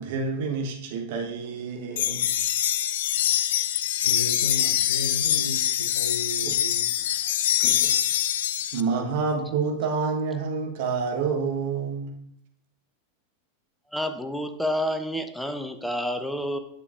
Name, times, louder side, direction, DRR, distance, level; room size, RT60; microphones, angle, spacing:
voice 1, 0.0-2.3 6.4-6.6 7.6-7.9 8.7-12.1, right 5 dB, 50° right, 2 dB, 1.2 m, -28 dB
sound 1, 2.0-8.8, left 11 dB, 55° left, 0.3 m, -24 dB
voice 2, 4.0-7.5, left 2 dB, 75° left, 7 dB, 0.7 m, -35 dB
voice 3, 13.9-16.6, equal, ahead, 7 dB, 0.6 m, -29 dB
9.7 x 7.0 x 2.5 m, 0.74 s
figure-of-eight pair, 90°, 0 cm